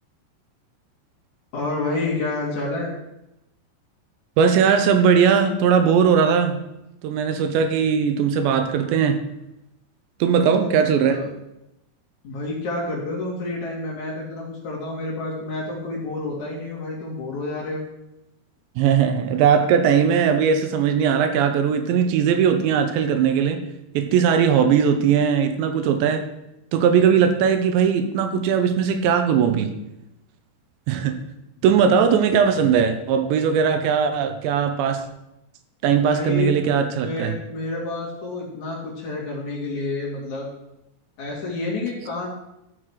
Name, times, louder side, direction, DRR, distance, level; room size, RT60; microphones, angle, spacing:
voice 1, 1.5-2.9 10.4-11.3 12.2-17.8 36.0-40.5 41.2-42.3, left 2 dB, 50° left, -4 dB, 3.1 m, -29 dB
voice 2, 4.4-6.6 7.0-9.2 10.2-11.2 18.8-23.6 23.9-26.3 26.7-29.8 30.9-31.2 31.6-35.1 35.8-37.4, right 7 dB, 85° right, 8 dB, 3.1 m, -19 dB
13.5 x 6.5 x 4.7 m, 0.88 s
omnidirectional pair, 5.1 m